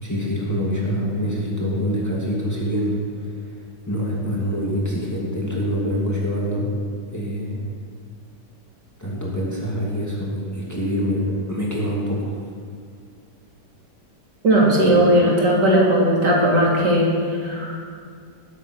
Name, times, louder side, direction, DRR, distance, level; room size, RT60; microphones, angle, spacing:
voice 1, 0.0-3.5 3.9-6.7 7.1-7.6 9.0-12.3, equal, 10° left, -4 dB, 2.5 m, -25 dB
voice 2, 14.4-17.1 17.4-18.0, right 1 dB, 75° right, -3 dB, 3.4 m, -17 dB
19.5 x 8.3 x 6.2 m, 2.2 s
omnidirectional pair, 1.9 m